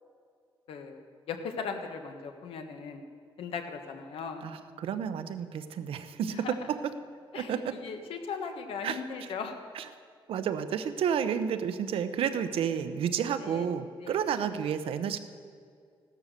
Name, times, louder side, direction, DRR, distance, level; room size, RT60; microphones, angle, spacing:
voice 1, 0.7-1.0 1.3-3.0 3.4-4.4 6.3-6.5 7.3-7.5 7.8-9.5 13.4-13.7 14.0-14.2, left 5 dB, 85° left, 5 dB, 1.5 m, -38 dB
voice 2, 4.4-6.8 7.3-7.7 8.8-9.3 9.7-9.8 10.3-15.2, right 8 dB, 85° right, 10 dB, 0.9 m, -31 dB
16.0 x 12.5 x 6.7 m, 2.2 s
wide cardioid pair, 150°, 9 cm